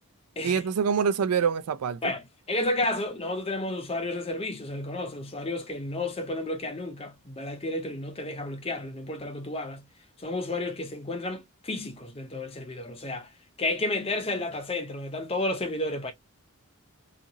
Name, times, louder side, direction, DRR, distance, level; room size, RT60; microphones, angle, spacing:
voice 1, 0.4-2.0, right 6 dB, 90° right, 0.4 m, -25 dB
voice 2, 2.5-9.8 10.2-13.3 13.6-16.1, left 2 dB, 25° left, 0.6 m, -31 dB
2.7 x 2.5 x 2.8 m
head